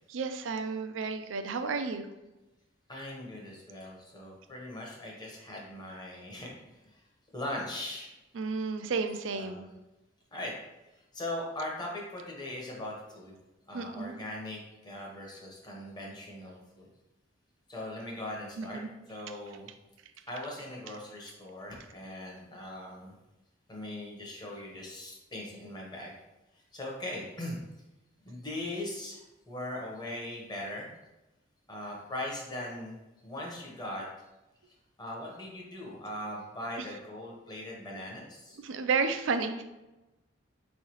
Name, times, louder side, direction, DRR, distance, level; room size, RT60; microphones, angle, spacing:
voice 1, 0.1-2.1 8.3-9.7 13.7-14.1 18.6-18.9 38.6-39.6, right 4 dB, 80° right, 8 dB, 0.4 m, -32 dB
voice 2, 2.9-6.5 6.9-7.0 7.3-8.1 9.3-9.7 10.3-10.5 11.1-13.4 13.7-16.9 17.7-18.8 19.1-19.7 20.3-23.2 23.7-26.1 26.7-27.6 28.2-30.9 31.7-33.0 33.2-34.1 35.0-38.6, left 1 dB, 20° left, -2 dB, 0.9 m, -40 dB
4.6 x 3.2 x 3.0 m, 1.0 s
head